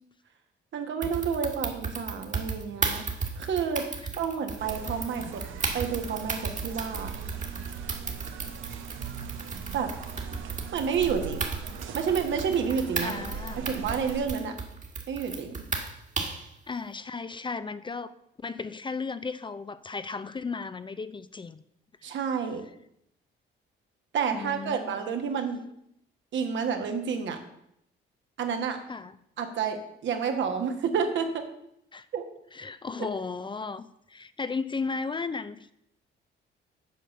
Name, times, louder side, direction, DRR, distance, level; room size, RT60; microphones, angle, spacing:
voice 1, 0.7-3.0 3.4-3.9 4.2-5.4 5.7-7.1 9.7-9.9 10.7-11.5 11.9-13.2 13.6-14.5 15.1-15.6 22.0-22.6 24.1-25.6 26.3-27.4 28.4-28.8 29.4-31.4 32.1-32.2 33.0-33.1, right 6 dB, 70° right, 6 dB, 1.4 m, -29 dB
sound 1, 1.0-16.5, right 4 dB, 40° right, 1.6 m, -35 dB
sound 2, 4.6-14.3, right 6 dB, 85° right, 0.8 m, -40 dB
voice 2, 13.0-13.7 14.4-14.6 16.7-18.1 18.4-21.6 24.3-25.0 28.9-29.2 31.9-32.1 32.5-35.7, left 4 dB, 25° left, 14 dB, 0.4 m, -35 dB
7.9 x 5.0 x 6.7 m, 0.76 s
cardioid pair, 90°, 20 cm